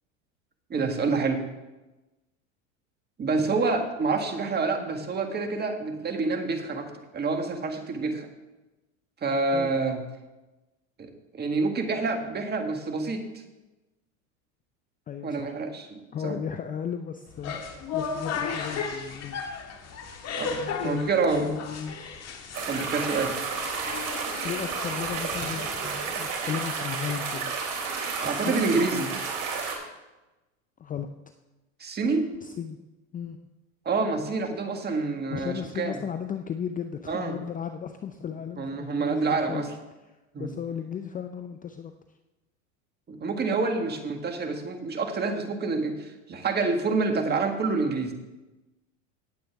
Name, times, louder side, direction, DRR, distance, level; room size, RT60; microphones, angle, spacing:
voice 1, 0.7-1.4 3.2-8.3 9.2-10.0 11.0-13.2 15.2-16.4 20.4-21.5 22.7-23.3 28.2-29.1 31.8-32.3 33.9-36.0 37.1-37.4 38.6-39.7 40.3-40.5 43.1-48.1, right 3 dB, 25° right, 5 dB, 1.8 m, -27 dB
voice 2, 15.1-15.6 16.1-17.6 17.9-19.4 20.8-22.0 24.4-27.5 28.2-28.6 30.8-31.1 32.4-32.8 33.1-33.4 34.9-39.6 40.1-41.9, left 8 dB, 20° left, 7 dB, 0.5 m, -35 dB
sound 1, 17.3-26.3, left 5 dB, 40° left, 1.8 m, -35 dB
sound 2, 22.5-29.7, right 5 dB, 50° right, 3.4 m, -31 dB
18.0 x 7.7 x 3.5 m, 1.1 s
supercardioid pair, 105°, 39 cm